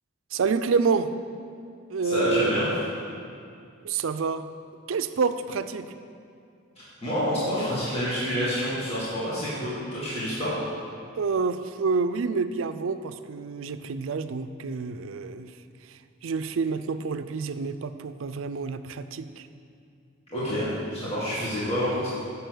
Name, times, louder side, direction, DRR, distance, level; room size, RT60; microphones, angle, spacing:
voice 1, 0.3-1.1 1.9-2.5 3.8-4.4 4.9-5.9 11.2-15.5 16.2-19.5, right 4 dB, 75° right, 11 dB, 0.4 m, -28 dB
voice 2, 2.0-2.7 7.0-10.6 20.3-22.1, equal, 30° left, -10 dB, 2.0 m, -28 dB
6.9 x 6.7 x 7.9 m, 2.5 s
head